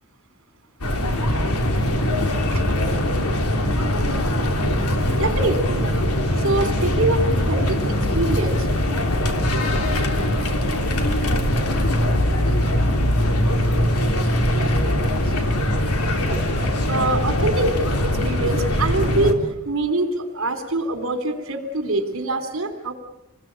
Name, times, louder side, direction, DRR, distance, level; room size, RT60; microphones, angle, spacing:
sound 1, 0.8-19.3, left 1 dB, 90° left, 3.3 m, -21 dB
voice 1, 5.1-5.9 6.4-7.8 8.1-8.7 13.4-14.3 14.9-15.0 16.2-16.4 16.9-17.8 18.0-19.4 19.7-22.9, right 2 dB, 65° right, 9 dB, 3.7 m, -24 dB
27.5 x 21.0 x 9.1 m, 0.91 s
head